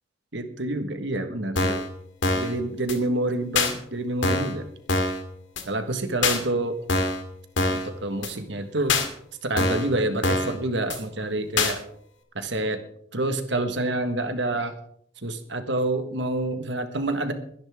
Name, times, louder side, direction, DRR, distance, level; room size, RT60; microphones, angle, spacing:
voice 1, 0.3-1.9 2.3-4.6 5.6-6.8 7.7-9.0 9.4-11.8 12.3-12.8 13.1-14.7 15.2-17.3, right 2 dB, 60° right, 8 dB, 1.6 m, -27 dB
sound 1, 1.6-1.9 2.2-2.5 2.9-3.0 3.6-3.7 4.2-4.6 4.9-5.2 5.6-5.7 6.2-6.4 6.9-7.2 7.6-7.9 8.2-8.3 8.9-9.1 9.6-9.9 10.2-10.6 10.9-11.0 11.6-11.7, left 3 dB, 70° left, 2.2 m, -24 dB
22.5 x 10.5 x 3.7 m, 0.65 s
head